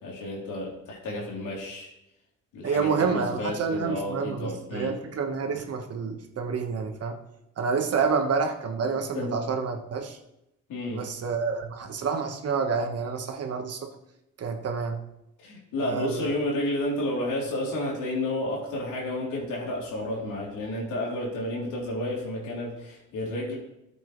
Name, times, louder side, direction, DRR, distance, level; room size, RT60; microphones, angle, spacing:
voice 1, 0.0-1.9 2.5-5.0 8.8-9.4 10.7-11.0 15.4-23.6, left 1 dB, 85° left, -3 dB, 3.6 m, -31 dB
voice 2, 2.6-7.2 7.6-10.2 10.9-13.9 14.4-15.0 15.8-16.3, right 5 dB, 55° right, 4 dB, 1.5 m, -28 dB
13.5 x 7.7 x 3.3 m, 0.86 s
cardioid pair, 90°, 30 cm